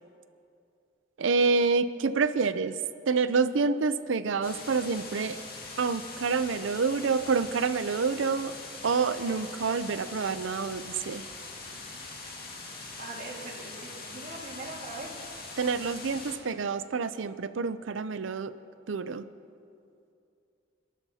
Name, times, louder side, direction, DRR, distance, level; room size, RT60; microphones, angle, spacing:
voice 1, 1.2-2.8 3.1-5.4 5.8-8.5 8.8-11.2 15.6-18.5 18.9-19.3, right 4 dB, 70° right, 13 dB, 0.5 m, -27 dB
sound 1, 4.4-16.4, left 3 dB, 50° left, 1.9 m, -42 dB
voice 2, 13.0-15.2, right 2 dB, 50° right, -1 dB, 1.9 m, -41 dB
26.0 x 11.5 x 2.8 m, 2.5 s
head